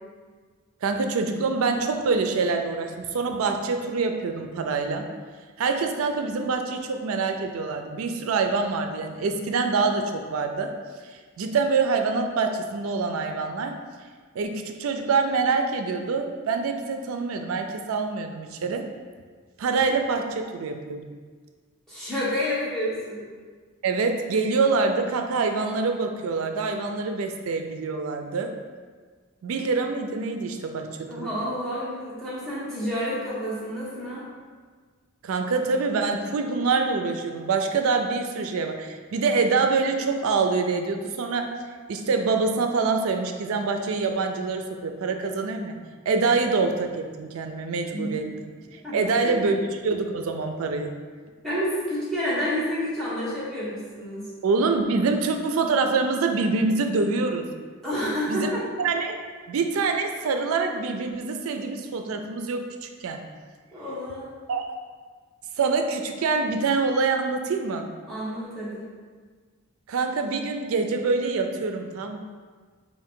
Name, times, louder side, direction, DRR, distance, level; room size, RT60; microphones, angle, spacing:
voice 1, 0.8-5.1 5.6-10.7 11.1-13.8 14.4-18.9 19.6-21.1 23.8-28.5 29.4-30.9 31.2-31.3 35.2-41.5 41.9-45.8 46.1-48.2 48.7-50.9 54.4-57.4 58.3-58.5 58.8-59.2 59.5-63.2 64.5-64.7 65.6-67.9 69.9-72.2, right 4 dB, 75° right, 5 dB, 0.4 m, -25 dB
voice 2, 21.9-23.2 31.1-34.3 47.9-48.1 48.8-49.5 51.4-54.3 57.8-58.6 63.7-64.3 68.1-68.9, equal, ahead, -9 dB, 0.9 m, -29 dB
3.6 x 2.5 x 3.6 m, 1.5 s
head